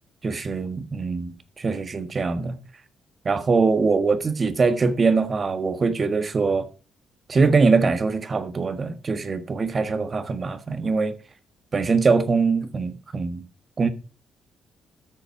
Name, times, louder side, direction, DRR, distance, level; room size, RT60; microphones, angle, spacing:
voice 1, 0.2-2.6 3.2-6.7 7.3-11.2 11.7-13.4 13.8-13.9, right 4 dB, 35° right, 1.5 m, -22 dB
13.0 x 6.8 x 4.5 m
cardioid pair, 90°, 0 cm